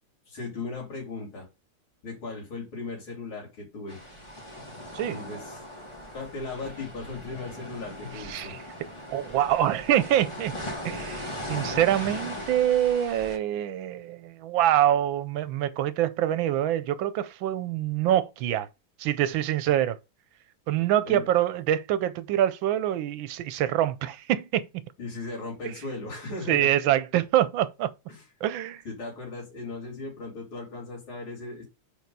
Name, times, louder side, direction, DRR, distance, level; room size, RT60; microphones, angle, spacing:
voice 1, 0.3-1.5 2.0-4.0 5.0-5.7 6.1-8.6 21.1-21.3 25.0-26.7 28.1-28.2 28.8-31.6, left 3 dB, 80° left, 3.4 m, -37 dB
sound 1, 3.9-13.4, equal, 15° left, 1.3 m, -39 dB
voice 2, 8.3-8.6 9.1-10.5 10.8-18.7 19.0-20.0 20.7-24.7 25.6-25.7 26.5-27.9 28.4-28.8, right 12 dB, 75° right, 1.3 m, -25 dB
4.8 x 4.6 x 5.3 m
omnidirectional pair, 2.3 m